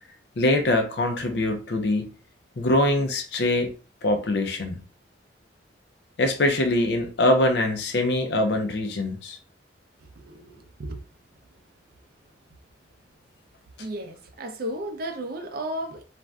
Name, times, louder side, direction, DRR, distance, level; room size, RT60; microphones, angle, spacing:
voice 1, 0.4-2.1 2.6-3.7 4.0-4.8 6.2-9.4, left 1 dB, 60° left, 0.5 m, -23 dB
voice 2, 10.2-11.0 13.8-16.0, right 1 dB, 55° right, 0.5 m, -34 dB
2.5 x 2.2 x 3.4 m
head